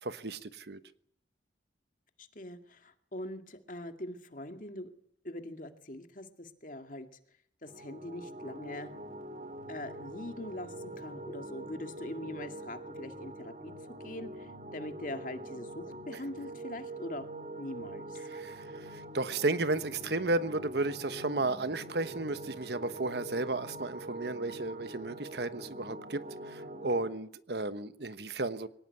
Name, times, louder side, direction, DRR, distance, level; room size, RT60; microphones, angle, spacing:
voice 1, 0.0-0.8 18.3-28.7, right 2 dB, 65° right, 1.1 m, -33 dB
voice 2, 2.2-4.9 5.2-7.1 7.6-8.9 9.7-13.7 14.0-17.3 17.6-18.2, left 1 dB, 45° left, 2.2 m, -42 dB
sound 1, 7.7-27.1, right 1 dB, 45° right, 2.8 m, -44 dB
23.5 x 18.5 x 9.8 m
head